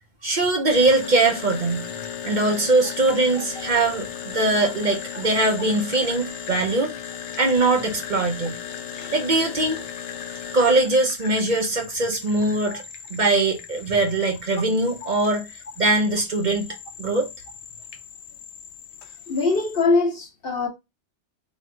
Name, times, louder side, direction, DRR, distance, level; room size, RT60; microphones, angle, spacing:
voice 1, 0.2-1.9 2.2-6.9 7.4-8.6 9.1-9.8 10.5-12.8 13.1-15.4 15.8-17.3, right 2 dB, 45° right, 0.8 m, -21 dB
sound 1, 0.7-19.8, left 8 dB, 85° left, 0.9 m, -37 dB
voice 2, 3.4-3.7 4.6-4.7 8.9-9.1 12.7-12.8 15.0-15.1 19.3-20.7, left 3 dB, 60° left, 1.0 m, -24 dB
3.3 x 3.1 x 3.7 m
omnidirectional pair, 1.2 m